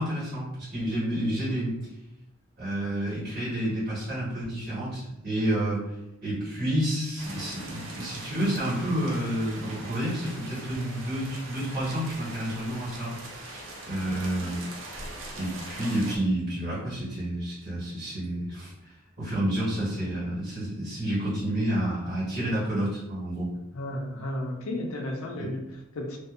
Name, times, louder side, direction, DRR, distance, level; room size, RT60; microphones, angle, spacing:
voice 1, 0.0-1.8 2.6-5.9 6.2-14.6 15.3-23.5 25.4-25.5, right 1 dB, 40° right, -9 dB, 1.2 m, -30 dB
sound 1, 7.2-16.2, right 2 dB, 60° right, 0.5 m, -42 dB
voice 2, 23.7-26.2, left 1 dB, 85° left, 2 dB, 0.5 m, -33 dB
2.6 x 2.2 x 2.3 m, 0.89 s
head